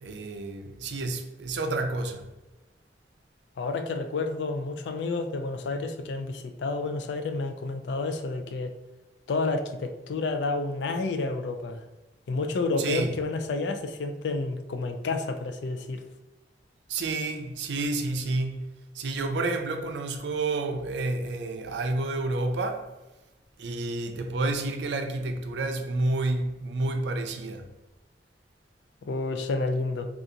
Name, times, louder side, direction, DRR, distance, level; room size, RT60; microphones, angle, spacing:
voice 1, 0.0-2.2 12.8-13.1 16.9-18.6 18.9-22.9 23.6-27.7, right 2 dB, 75° right, 0.4 m, -29 dB
voice 2, 3.6-8.7 9.3-11.8 12.3-16.0 29.0-30.1, left 3 dB, 75° left, 0.4 m, -30 dB
2.7 x 2.4 x 3.8 m
head